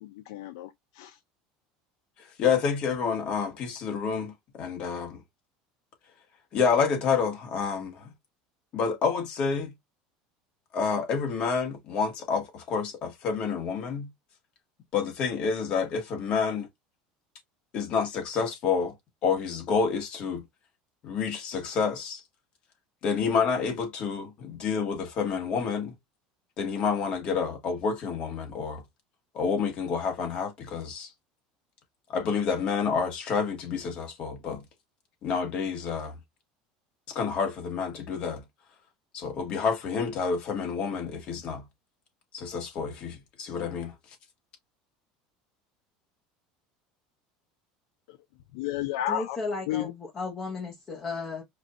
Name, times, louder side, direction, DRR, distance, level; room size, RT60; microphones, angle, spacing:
voice 1, 0.0-1.2 48.5-49.4 49.7-49.9, left 11 dB, 85° left, 0.5 m, -32 dB
voice 2, 2.4-5.2 6.5-8.1 8.7-9.7 10.7-14.1 14.9-16.7 17.7-18.9 19.2-20.4 21.0-22.2 23.0-25.9 26.6-28.8 29.3-31.1 32.1-34.6 35.2-36.1 37.1-38.4 39.1-41.6 42.3-43.9, left 5 dB, 40° left, 1.6 m, -28 dB
voice 3, 49.1-51.4, left 3 dB, 25° left, 1.2 m, -34 dB
4.9 x 2.6 x 2.4 m
cardioid pair, 150°, 3 cm